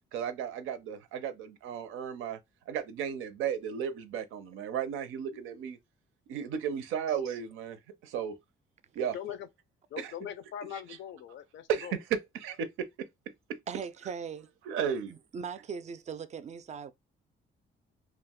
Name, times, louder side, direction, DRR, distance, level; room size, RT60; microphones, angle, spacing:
voice 1, 0.1-2.4 2.7-5.8 6.3-8.4 8.9-9.2 10.0-10.1 11.7-13.1 14.7-15.1, right 8 dB, 90° right, 0.5 m, -34 dB
voice 2, 9.1-9.5 9.9-12.0, left 9 dB, 70° left, 0.5 m, -41 dB
voice 3, 13.7-14.5 15.1-16.9, right 6 dB, 35° right, 0.4 m, -39 dB
2.3 x 2.1 x 3.5 m
cardioid pair, 90°, 20 cm